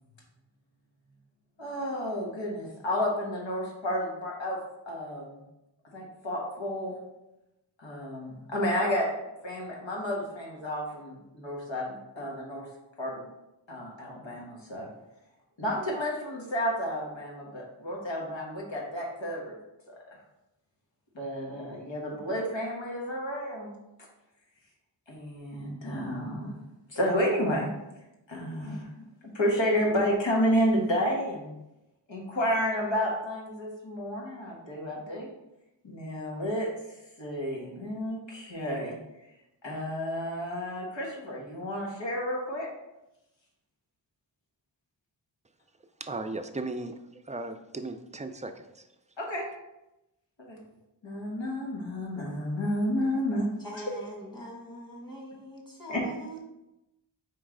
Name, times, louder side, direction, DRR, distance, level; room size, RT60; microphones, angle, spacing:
voice 1, 1.6-4.6 4.9-5.4 5.9-7.0 7.8-9.1 9.4-12.7 13.0-13.2 13.7-14.9 15.6-19.6 21.1-23.7 25.1-26.6 26.9-27.7 28.3-28.9 29.3-31.5 32.1-35.3 35.8-39.0 39.6-42.7 49.2-49.4 50.4-50.6 51.0-53.5 53.7-53.9 55.9-56.1, equal, 85° left, -2 dB, 1.3 m, -31 dB
voice 2, 46.0-48.9, right 2 dB, 20° right, 7 dB, 0.3 m, -37 dB
voice 3, 53.6-56.4, right 1 dB, 10° left, -2 dB, 1.4 m, -42 dB
4.6 x 3.1 x 3.6 m, 0.93 s
wide cardioid pair, 40°, 44 cm